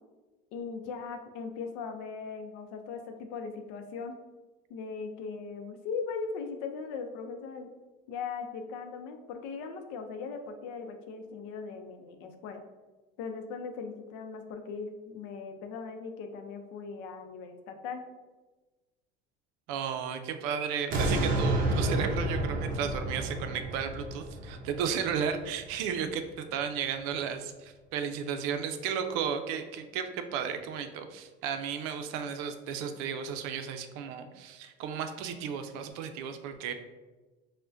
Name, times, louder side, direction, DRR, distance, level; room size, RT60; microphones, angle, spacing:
voice 1, 0.5-4.2 4.7-7.7 8.1-12.6 13.2-18.0, left 5 dB, 80° left, 6 dB, 0.5 m, -39 dB
voice 2, 19.7-36.7, right 7 dB, 80° right, 7 dB, 0.4 m, -34 dB
sound 1, 20.9-26.0 26.5-26.6, right 1 dB, 40° right, 0.6 m, -31 dB
4.7 x 2.1 x 2.5 m, 1.2 s
cardioid pair, 155°, 20 cm